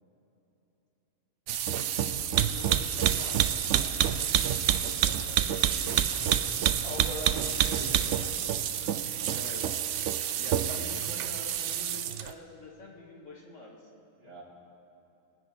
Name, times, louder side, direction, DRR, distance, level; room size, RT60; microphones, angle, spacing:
sound 1, 1.5-12.3, right 9 dB, 65° right, 0.9 m, -28 dB
voice 1, 1.9-4.0 4.6-6.4 7.4-7.9 8.8-8.9 9.3-9.7 10.4-14.0, left 2 dB, 60° left, -2 dB, 2.1 m, -47 dB
voice 2, 6.8-8.2 9.0-9.1 14.2-14.4, equal, 40° right, -5 dB, 3.2 m, -40 dB
23.0 x 9.3 x 4.4 m, 2.8 s
omnidirectional pair, 1.5 m